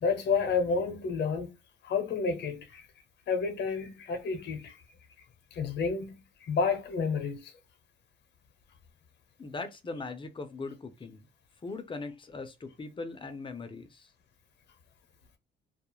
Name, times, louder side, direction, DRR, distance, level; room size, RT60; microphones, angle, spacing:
voice 1, 0.0-1.5 1.8-2.9 3.3-4.8 5.5-7.5, left 5 dB, 60° left, 0.8 m, -30 dB
voice 2, 9.4-11.3 11.6-14.1, left 3 dB, 25° left, 0.6 m, -40 dB
2.3 x 2.0 x 3.0 m
cardioid pair, 90°, 20 cm